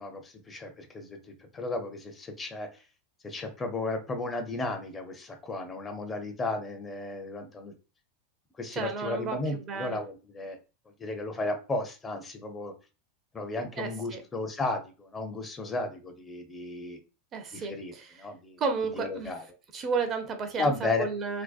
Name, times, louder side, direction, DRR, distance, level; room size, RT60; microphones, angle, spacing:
voice 1, 0.0-2.8 3.2-7.7 8.6-10.6 11.0-12.7 13.3-17.0 17.5-17.9 18.2-18.6 18.9-19.4 20.6-21.1, left 2 dB, 20° left, 5 dB, 0.5 m, -34 dB
voice 2, 8.7-10.0 13.8-14.2 17.3-18.2 18.6-19.3 19.7-21.4, right 4 dB, 30° right, 6 dB, 0.5 m, -33 dB
2.6 x 2.1 x 2.3 m, 0.32 s
figure-of-eight pair, 85°, 0 cm